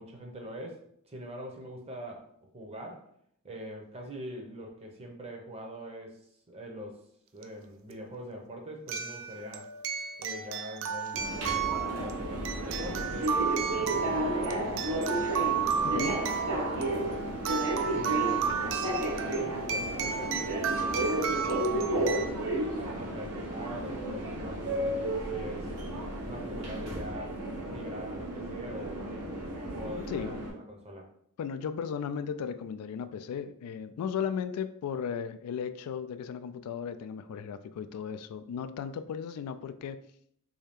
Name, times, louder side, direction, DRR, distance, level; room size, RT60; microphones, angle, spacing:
voice 1, 0.0-3.1 3.4-6.2 6.5-7.0 7.3-9.7 10.2-13.4 13.8-15.4 15.7-17.3 17.8-18.8 19.3-22.4 22.8-25.7 26.3-29.2 29.7-31.1, equal, 30° right, 1 dB, 0.7 m, -43 dB
sound 1, 7.4-7.5 8.9-22.3, right 7 dB, 60° right, 0.4 m, -33 dB
Subway metro underground, 11.1-30.5, right 1 dB, 85° right, 0.9 m, -33 dB
voice 2, 15.8-16.2 30.0-30.5 31.4-40.0, left 7 dB, 75° left, 12 dB, 0.3 m, -36 dB
3.2 x 2.7 x 3.5 m, 0.67 s
head